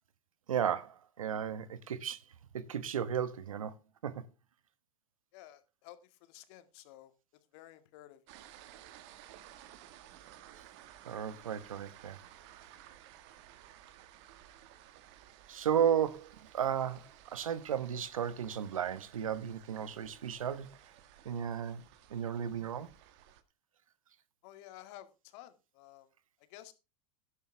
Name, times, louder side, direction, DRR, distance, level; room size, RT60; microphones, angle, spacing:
voice 1, 0.5-2.2 2.5-3.7 4.0-4.2 11.1-12.2 15.5-17.0 17.3-20.7 21.2-21.8 22.1-22.9, right 8 dB, 85° right, 1.2 m, -34 dB
voice 2, 5.3-7.1 7.5-8.2 24.4-26.1 26.5-26.7, left 14 dB, 60° left, 2.1 m, -53 dB
sound 1, 8.3-23.4, right 12 dB, 60° right, 1.7 m, -56 dB
11.5 x 11.0 x 3.4 m
hypercardioid pair, 95°, 17 cm